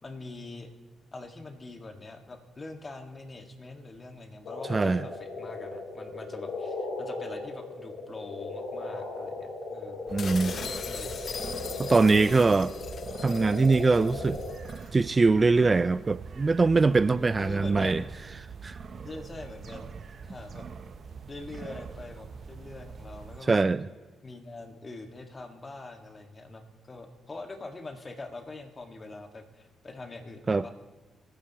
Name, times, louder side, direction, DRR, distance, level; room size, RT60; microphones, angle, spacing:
voice 1, 0.0-0.7 1.1-10.1 10.5-11.1 17.1-18.1 19.0-20.0 20.2-20.7 21.3-23.5 24.2-30.7, left 2 dB, 35° left, 1.8 m, -43 dB
sound 1, 4.4-14.6, left 3 dB, 80° left, 3.0 m, -37 dB
voice 2, 4.7-5.0 10.1-10.5 11.8-12.7 13.2-14.4 14.9-18.0 18.6-18.8 23.5-23.9 30.5-30.6, right 3 dB, 35° right, 0.4 m, -22 dB
sound 2, 10.1-23.4, right 5 dB, 55° right, 0.8 m, -43 dB
sound 3, 10.2-14.9, left 6 dB, 60° left, 0.4 m, -41 dB
27.5 x 9.8 x 3.0 m
supercardioid pair, 60°, 0 cm